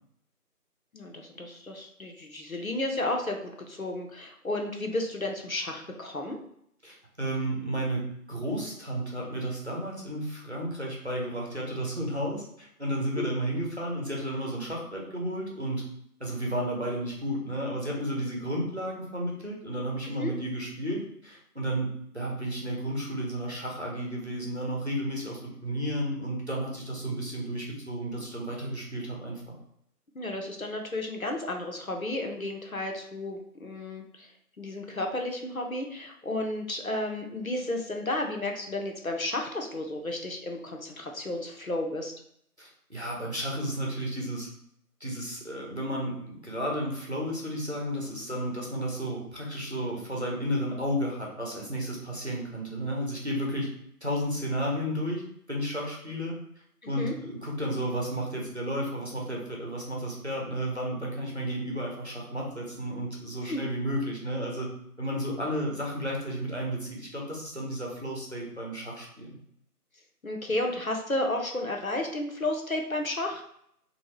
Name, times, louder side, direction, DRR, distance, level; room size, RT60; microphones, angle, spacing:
voice 1, 0.9-6.4 13.2-13.3 20.0-20.3 30.1-42.1 56.8-57.1 63.4-63.6 70.2-73.4, left 1 dB, 60° left, 2 dB, 0.6 m, -32 dB
voice 2, 6.8-15.9 16.2-29.5 42.6-44.5 45.0-53.7 54.0-55.2 55.5-56.4 56.9-64.7 65.0-69.4, equal, 45° right, -2 dB, 0.8 m, -32 dB
3.0 x 2.6 x 3.1 m, 0.72 s
figure-of-eight pair, 180°, 47 cm